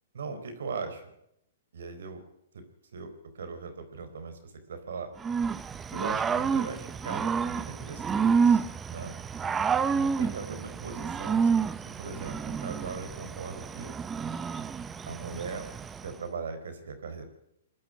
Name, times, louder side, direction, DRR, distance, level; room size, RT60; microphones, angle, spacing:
voice 1, 0.1-1.1 1.7-2.2 2.5-2.6 2.9-5.1 5.9-8.6 8.9-9.1 9.9-11.6 12.0-13.9 15.1-15.7 16.0-17.3, right 4 dB, 80° right, 8 dB, 4.3 m, -39 dB
Growling / Cricket, 5.2-16.1, right 6 dB, 15° right, 0.7 m, -29 dB
22.0 x 12.0 x 9.7 m, 0.80 s
hypercardioid pair, 145°, 0 cm